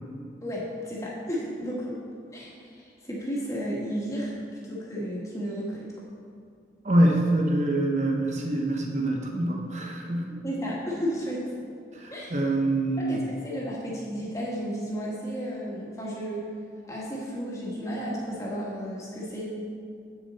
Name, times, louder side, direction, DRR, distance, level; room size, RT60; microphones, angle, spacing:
voice 1, 0.4-2.0 2.3-4.3 4.6-5.9 10.4-11.5 12.1-12.4 13.0-16.4 16.9-19.5, equal, 20° left, -5 dB, 1.6 m, -33 dB
voice 2, 6.8-10.3 11.9-13.2, right 1 dB, 40° right, 1 dB, 1.0 m, -25 dB
8.6 x 7.0 x 4.2 m, 2.4 s
head